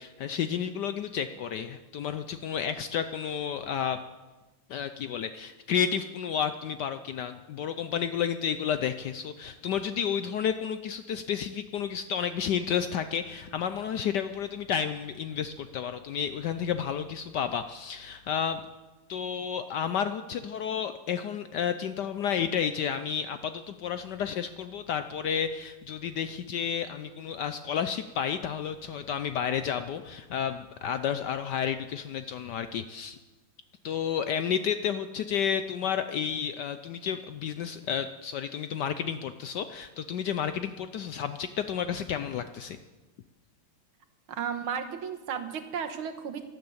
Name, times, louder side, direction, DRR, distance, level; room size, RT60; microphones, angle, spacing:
voice 1, 0.0-4.0 4.7-18.6 19.1-33.2 33.8-42.8, left 8 dB, 70° left, 10 dB, 1.1 m, -31 dB
voice 2, 44.3-46.4, right 7 dB, 85° right, 6 dB, 2.1 m, -34 dB
12.5 x 12.0 x 7.9 m, 1.2 s
omnidirectional pair, 2.3 m